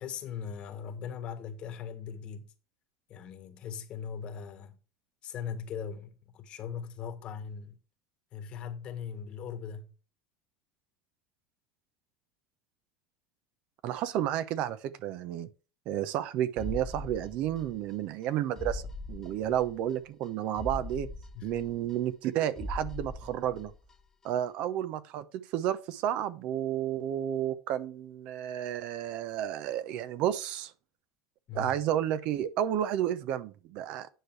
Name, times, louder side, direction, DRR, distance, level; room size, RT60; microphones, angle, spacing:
voice 1, 0.0-2.5 3.1-4.8 5.2-7.8 8.3-9.9 19.4-19.6 21.3-21.5 31.5-31.7, left 7 dB, 45° left, 1.5 m, -40 dB
voice 2, 13.8-15.5 15.9-18.8 19.1-21.1 21.4-23.7 24.2-30.7 31.5-34.1, right 11 dB, 60° right, 0.8 m, -31 dB
sound 1, 16.6-17.9 18.2-18.3 18.6-19.9 20.2-20.3 20.6-22.3 22.6-23.9 24.2-24.3, left 1 dB, 20° left, 1.1 m, -40 dB
9.3 x 4.8 x 4.6 m
supercardioid pair, 100°, 2 cm